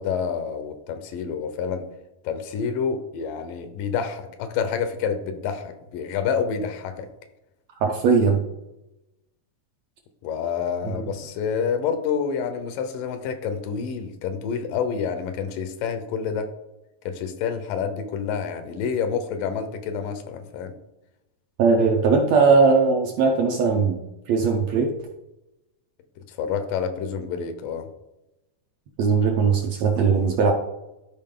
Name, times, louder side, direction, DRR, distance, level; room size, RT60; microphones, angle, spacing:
voice 1, 0.0-1.9 2.2-7.1 10.2-16.5 17.1-20.7 26.3-27.9, left 6 dB, 85° left, 8 dB, 2.5 m, -28 dB
voice 2, 7.8-8.4 10.9-11.1 21.6-24.0 24.3-24.9 29.0-30.5, right 5 dB, 70° right, 2 dB, 1.7 m, -19 dB
12.5 x 4.7 x 3.7 m, 0.93 s
omnidirectional pair, 3.8 m